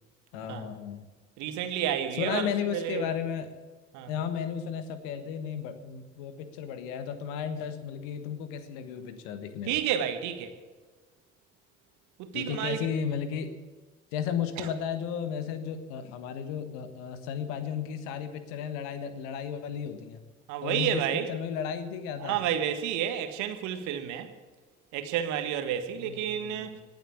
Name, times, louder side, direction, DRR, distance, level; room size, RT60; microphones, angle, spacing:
voice 1, 0.3-1.0 2.1-3.5 4.1-9.8 12.3-13.5 14.1-20.2 20.6-22.4 25.9-26.8, left 8 dB, 65° left, 11 dB, 1.5 m, -34 dB
voice 2, 1.4-3.1 3.9-4.1 9.7-10.6 12.2-12.8 14.6-14.7 20.5-21.3 22.2-24.3 24.9-26.8, right 10 dB, 60° right, 8 dB, 1.7 m, -30 dB
18.0 x 7.9 x 8.4 m, 1.3 s
figure-of-eight pair, 45°, 33 cm